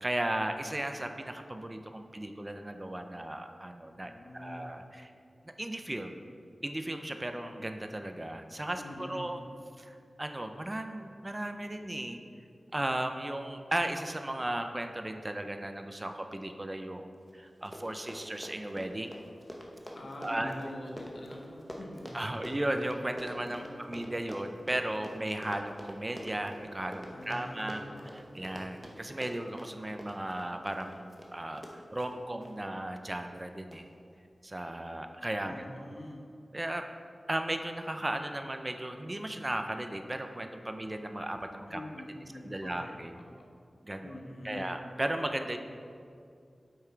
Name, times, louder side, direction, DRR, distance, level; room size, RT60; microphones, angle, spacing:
voice 1, 0.0-5.1 5.6-6.2 6.6-9.4 9.8-12.2 12.7-19.1 20.2-20.5 22.1-27.8 28.1-33.9 34.4-35.9 36.5-36.9 37.3-41.8 42.4-43.1 43.8-44.2 44.4-45.6, right 1 dB, 25° right, 6 dB, 0.5 m, -36 dB
voice 2, 3.8-4.7 8.7-9.4 19.9-22.1 23.4-24.0 27.1-28.9 35.4-36.3 41.7-43.5 44.0-44.8, left 1 dB, 80° left, 0 dB, 1.2 m, -45 dB
Run, 17.3-17.4 17.6-32.6 33.1-33.4 33.7-33.8, equal, ahead, 1.0 m, -46 dB
7.9 x 5.8 x 4.5 m, 2.3 s
wide cardioid pair, 80°, 0 cm